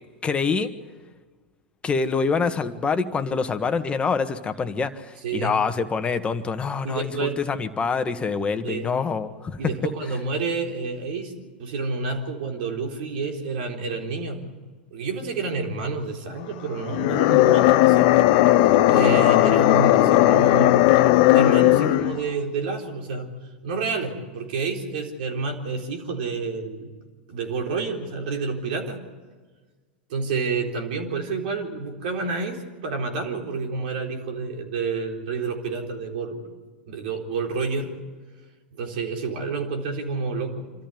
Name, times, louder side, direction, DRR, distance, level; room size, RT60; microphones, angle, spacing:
voice 1, 0.2-0.7 1.8-9.6, left 5 dB, 20° left, 9 dB, 1.6 m, -25 dB
voice 2, 5.2-5.6 6.8-7.4 8.6-8.9 9.6-14.4 14.9-18.2 18.6-21.0 21.3-23.3 23.6-26.9 27.3-29.0 30.1-36.4 36.9-37.9 38.7-40.7, right 4 dB, 65° right, 2 dB, 3.9 m, -29 dB
sound 1, 16.9-22.2, left 15 dB, 55° left, 0.9 m, -17 dB
26.0 x 13.5 x 9.5 m, 1.4 s
hypercardioid pair, 95°, 5 cm